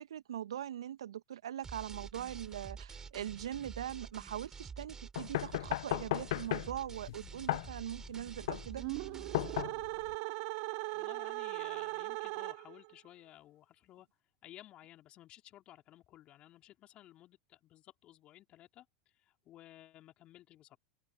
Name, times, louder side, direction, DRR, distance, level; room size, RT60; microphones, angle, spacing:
voice 1, 0.0-8.8, right 10 dB, 70° right, 1.5 m, -41 dB
sound 1, 1.6-9.6, right 5 dB, 20° right, 4.9 m, -49 dB
sound 2, 5.2-10.2, left 16 dB, 65° left, 0.6 m, -36 dB
sound 3, 8.7-12.9, right 29 dB, 55° right, 0.8 m, -39 dB
voice 2, 10.9-14.1 14.4-20.8, left 14 dB, 40° left, 4.0 m, -56 dB
figure-of-eight pair, 90°, 3 cm